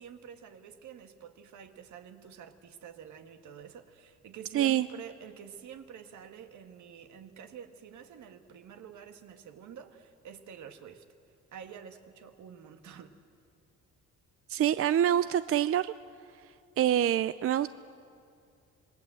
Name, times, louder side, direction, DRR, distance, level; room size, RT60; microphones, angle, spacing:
voice 1, 0.0-11.0 11.5-13.2, right 8 dB, 75° right, 7 dB, 1.7 m, -48 dB
voice 2, 4.5-4.9 14.5-15.9 16.8-17.7, right 11 dB, 50° right, 14 dB, 0.5 m, -26 dB
26.5 x 20.5 x 7.8 m, 2.4 s
cardioid pair, 90°, 30 cm